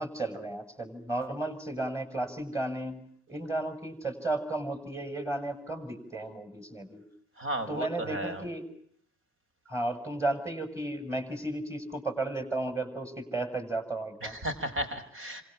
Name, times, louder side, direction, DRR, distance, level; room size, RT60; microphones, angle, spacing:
voice 1, 0.0-3.0 3.3-7.1 7.7-8.7 9.7-14.3, right 2 dB, 10° right, 8 dB, 7.1 m, -34 dB
voice 2, 7.4-8.5 14.2-15.4, right 1 dB, 40° right, 9 dB, 5.6 m, -34 dB
28.5 x 26.5 x 7.3 m, 0.64 s
hypercardioid pair, 55°, 31 cm